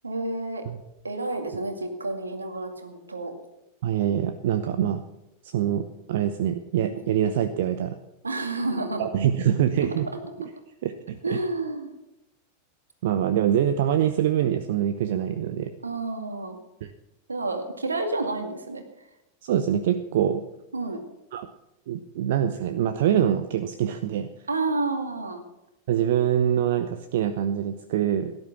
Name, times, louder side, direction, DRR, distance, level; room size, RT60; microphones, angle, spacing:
voice 1, 0.0-0.6 1.0-3.3 6.9-7.0 8.2-9.1 11.2-11.9 15.8-16.6 17.3-18.8 20.7-21.0 24.5-25.4, right 2 dB, 75° right, 6 dB, 2.1 m, -30 dB
voice 2, 3.8-5.0 5.4-8.0 9.0-10.1 10.8-11.4 13.0-15.7 16.8-16.9 19.4-20.4 21.3-21.5 21.9-24.3 25.9-28.3, right 10 dB, 55° right, 10 dB, 0.8 m, -24 dB
17.0 x 10.5 x 5.8 m, 0.92 s
figure-of-eight pair, 90°, 0 cm